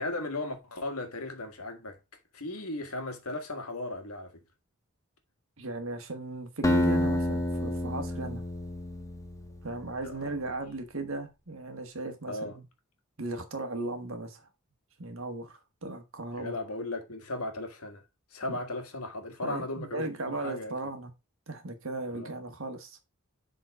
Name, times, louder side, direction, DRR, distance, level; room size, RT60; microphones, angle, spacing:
voice 1, 0.0-2.0 2.3-4.3 10.0-10.4 12.3-12.6 16.4-18.0 18.3-20.8 22.1-22.3, left 2 dB, 85° left, 1.7 m, -36 dB
voice 2, 5.6-8.4 9.6-12.6 13.2-14.5 15.0-16.6 18.5-18.6 19.4-21.1 21.5-23.0, right 2 dB, 65° right, 1.5 m, -37 dB
Acoustic guitar, 6.6-9.6, left 1 dB, 15° left, 0.7 m, -28 dB
7.4 x 3.9 x 4.7 m
head